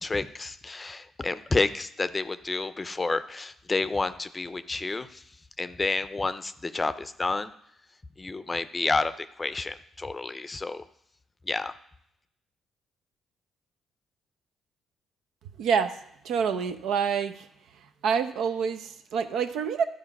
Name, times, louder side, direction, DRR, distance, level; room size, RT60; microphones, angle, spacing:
voice 1, 0.0-5.2 5.6-7.5 8.2-10.8 11.5-11.7, left 3 dB, 25° left, 12 dB, 0.5 m, -30 dB
voice 2, 15.6-16.0 16.2-17.5 18.0-19.8, right 6 dB, 80° right, 8 dB, 0.7 m, -27 dB
12.0 x 4.7 x 5.9 m, 0.75 s
cardioid pair, 90°, 0 cm